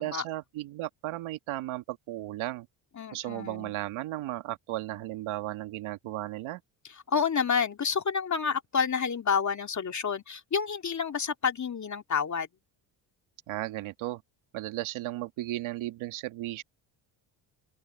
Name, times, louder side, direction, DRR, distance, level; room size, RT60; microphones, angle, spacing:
voice 1, 0.0-2.7 3.1-6.6 13.5-14.2 14.5-16.6, right 15 dB, 85° right, 2.0 m, -35 dB
voice 2, 3.0-3.7 7.1-12.5, left 6 dB, 35° left, 2.4 m, -29 dB
open air
cardioid pair, 85°, 48 cm